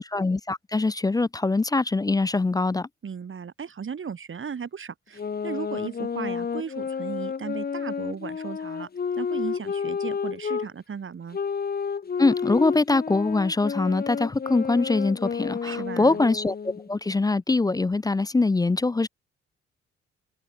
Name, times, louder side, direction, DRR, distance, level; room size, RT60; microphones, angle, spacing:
voice 1, 0.0-2.9 12.2-19.1, left 3 dB, 15° left, 0.5 m, -23 dB
voice 2, 3.0-8.9 9.2-11.4 15.6-16.2, right 6 dB, 40° right, 2.2 m, -36 dB
sound 1, 5.2-10.7 11.3-16.9, left 6 dB, 30° left, 1.0 m, -31 dB
open air
hypercardioid pair, 40°, 30 cm